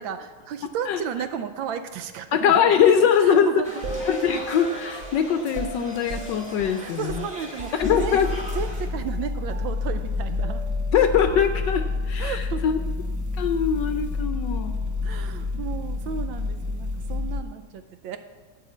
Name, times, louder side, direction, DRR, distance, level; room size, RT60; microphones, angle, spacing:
voice 1, 0.0-2.7 3.2-3.9 6.8-10.6 12.2-12.7 15.0-18.2, right 7 dB, 75° right, 9 dB, 1.3 m, -33 dB
voice 2, 2.3-3.6 4.0-7.2 7.8-8.3 10.9-12.7 13.4-14.7 15.5-15.6, left 7 dB, 70° left, 7 dB, 1.1 m, -22 dB
sound 1, 3.6-8.9, equal, 5° right, 1.9 m, -40 dB
sound 2, 3.8-8.3 8.5-8.7 9.0-12.0, right 2 dB, 50° right, 0.8 m, -37 dB
sound 3, 7.8-17.4, left 3 dB, 20° right, 0.4 m, -29 dB
12.5 x 4.9 x 8.2 m, 1.4 s
omnidirectional pair, 2.3 m